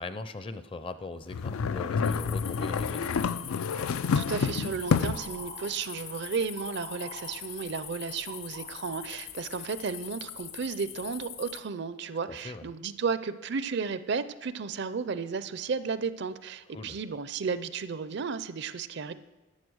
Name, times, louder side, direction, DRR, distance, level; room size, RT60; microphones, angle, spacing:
voice 1, 0.0-3.4 12.3-12.7 16.7-17.0, left 3 dB, 25° left, 11 dB, 0.5 m, -40 dB
sound 1, 1.3-5.4, left 5 dB, 90° left, 0.4 m, -28 dB
sound 2, 2.0-11.6, left 11 dB, 70° left, 1.0 m, -43 dB
sound 3, 3.7-9.9, right 6 dB, 85° right, 0.8 m, -50 dB
voice 2, 4.1-19.1, right 5 dB, 55° right, 14 dB, 0.5 m, -33 dB
11.5 x 8.3 x 6.2 m, 1.2 s
head